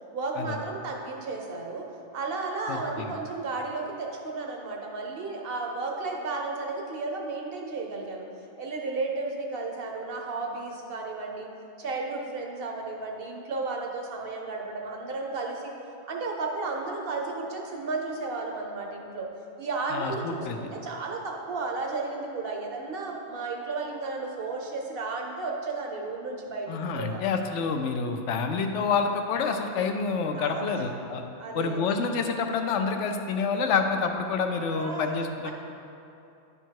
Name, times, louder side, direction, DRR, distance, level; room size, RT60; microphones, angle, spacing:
voice 1, 0.1-1.9 2.1-8.3 8.6-11.5 11.8-15.7 16.1-19.3 19.6-27.2 30.4-30.9 31.4-31.9 34.7-35.1 35.4-35.5, right 3 dB, 55° right, 1 dB, 0.9 m, -33 dB
voice 2, 2.7-3.1 19.9-20.6 26.7-31.2 31.5-35.5, left 5 dB, 75° left, 5 dB, 0.9 m, -28 dB
10.0 x 3.6 x 4.6 m, 2.7 s
omnidirectional pair, 1.3 m